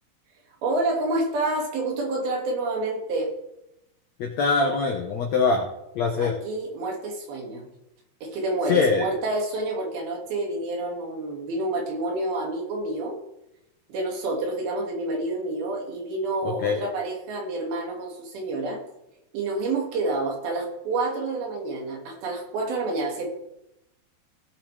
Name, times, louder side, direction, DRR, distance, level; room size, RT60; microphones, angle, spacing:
voice 1, 0.6-3.3 6.2-7.7 8.2-13.2 13.9-18.8 19.3-23.3, right 2 dB, 70° right, 0 dB, 3.8 m, -28 dB
voice 2, 4.2-5.7 5.9-6.4 8.7-9.1 16.4-16.8, left 4 dB, 75° left, 1 dB, 1.6 m, -23 dB
18.0 x 7.4 x 3.3 m, 0.85 s
omnidirectional pair, 4.6 m